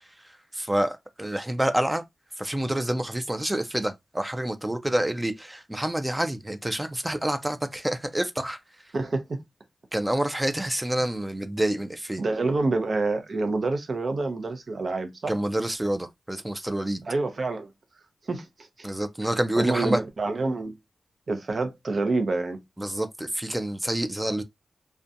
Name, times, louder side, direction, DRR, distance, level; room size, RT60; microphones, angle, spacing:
voice 1, 0.2-2.0 2.4-8.6 9.9-12.2 15.3-17.0 18.8-20.0 22.8-24.4, right 1 dB, 15° right, 0.4 m, -28 dB
voice 2, 8.9-9.4 12.2-15.3 17.0-17.7 18.3-18.5 18.8-18.9 19.6-20.7 21.3-22.6, right 3 dB, 60° right, 0.7 m, -27 dB
2.4 x 2.2 x 2.6 m
cardioid pair, 55°, 0 cm